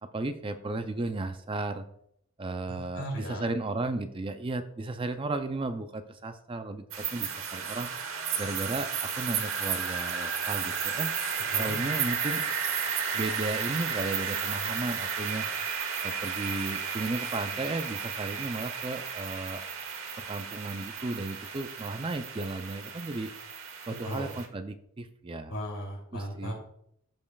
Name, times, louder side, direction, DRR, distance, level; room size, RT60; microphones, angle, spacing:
voice 1, 0.1-1.9 2.4-7.9 8.4-11.1 11.6-12.4 13.1-15.5 16.0-19.6 20.2-23.3 23.9-25.5 26.1-26.5, right 2 dB, 25° right, 9 dB, 0.4 m, -34 dB
voice 2, 2.7-3.5 11.5-11.7 24.0-24.3 25.5-26.5, equal, 65° left, -1 dB, 2.8 m, -36 dB
sound 1, 6.9-24.5, right 6 dB, 65° right, 1.1 m, -33 dB
13.5 x 5.3 x 2.3 m, 0.72 s
head